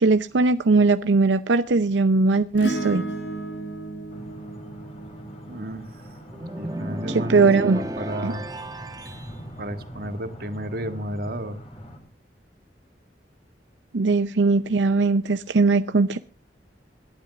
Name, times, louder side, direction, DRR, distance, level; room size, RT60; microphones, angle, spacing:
voice 1, 0.0-3.0 7.1-7.8 8.2-8.3 13.9-16.2, right 3 dB, 85° right, 0.6 m, -20 dB
Acoustic guitar / Strum, 2.6-7.2 9.1-9.2, right 1 dB, 85° left, 4.5 m, -34 dB
sound 1, 4.1-12.0, equal, 35° left, 4.3 m, -42 dB
voice 2, 5.4-6.0 6.6-8.5 9.6-11.6, right 1 dB, 55° right, 1.7 m, -33 dB
sound 2, 6.3-9.3, right 1 dB, 20° right, 1.2 m, -33 dB
27.0 x 11.5 x 2.4 m
head